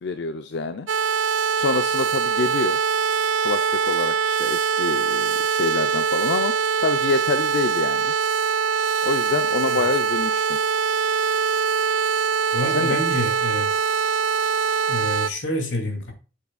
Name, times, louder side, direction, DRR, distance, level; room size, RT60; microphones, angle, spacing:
voice 1, 0.0-0.9 1.5-2.8 3.4-8.1 9.0-10.6 12.7-13.0, left 3 dB, 65° left, 0.5 m, -26 dB
sound 1, 0.9-15.3, right 6 dB, 75° right, 0.4 m, -23 dB
voice 2, 12.5-13.7 14.9-16.1, left 1 dB, 80° left, 2.5 m, -28 dB
8.1 x 7.5 x 2.3 m
head